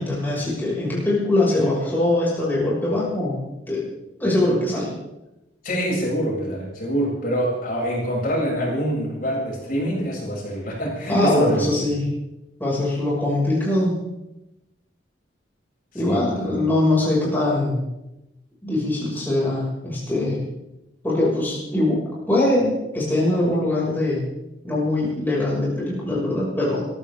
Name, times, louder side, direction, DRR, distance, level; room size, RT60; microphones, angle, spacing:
voice 1, 0.0-3.8 4.2-4.9 11.1-12.1 12.6-13.9 15.9-17.8 18.6-20.4 21.0-22.0 22.3-24.3 24.6-26.9, left 1 dB, 10° left, -6 dB, 6.3 m, -22 dB
voice 2, 5.6-11.7 15.9-16.6, equal, 50° left, -4 dB, 7.6 m, -25 dB
22.5 x 14.5 x 3.8 m, 0.94 s
head